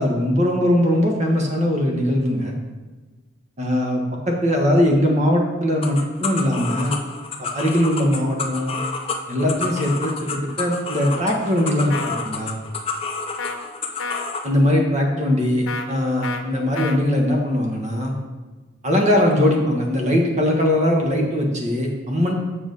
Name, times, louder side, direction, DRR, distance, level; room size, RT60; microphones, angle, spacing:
voice 1, 0.0-2.5 3.6-6.9 7.4-8.7 9.3-12.6 14.4-18.1 18.8-22.3, left 1 dB, 35° right, 1 dB, 1.3 m, -20 dB
sound 1, 5.8-14.5, left 4 dB, 30° left, 0.6 m, -30 dB
sound 2, 11.9-12.2 13.4-13.6 14.0-14.3 15.7-15.9 16.2-16.4 16.8-17.0, left 4 dB, 90° left, 0.8 m, -29 dB
7.4 x 6.0 x 4.0 m, 1.2 s
head